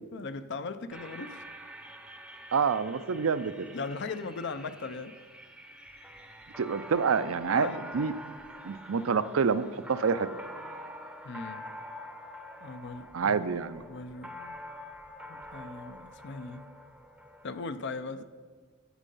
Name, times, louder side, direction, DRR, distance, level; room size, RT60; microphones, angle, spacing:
voice 1, 0.1-1.4 3.7-5.1 7.5-7.8 11.2-11.6 12.6-13.4 13.9-14.6 15.3-16.7 17.4-18.2, left 4 dB, 55° left, 11 dB, 0.5 m, -38 dB
sound 1, 0.9-17.6, equal, 5° right, 0.6 m, -46 dB
voice 2, 2.5-3.7 6.6-7.7 7.9-8.1 8.6-9.6 9.9-10.3 13.1-13.8, right 5 dB, 70° right, 13 dB, 0.5 m, -27 dB
10.0 x 8.3 x 5.5 m, 1.5 s
head